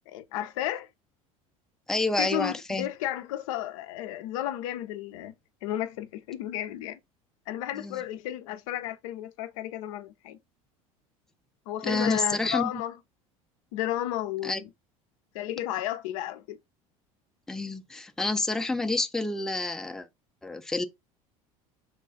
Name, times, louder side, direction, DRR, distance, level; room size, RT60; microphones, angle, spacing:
voice 1, 0.1-0.9 2.2-5.3 5.6-7.0 7.5-10.4 11.7-13.0 13.7-14.7 15.3-16.6, left 13 dB, 70° left, 0.4 m, -33 dB
voice 2, 1.9-2.9 7.8-8.0 11.8-12.7 14.4-14.6 17.5-20.1 20.4-20.9, left 2 dB, 5° left, 0.4 m, -28 dB
3.2 x 2.3 x 3.7 m
hypercardioid pair, 75°, 18 cm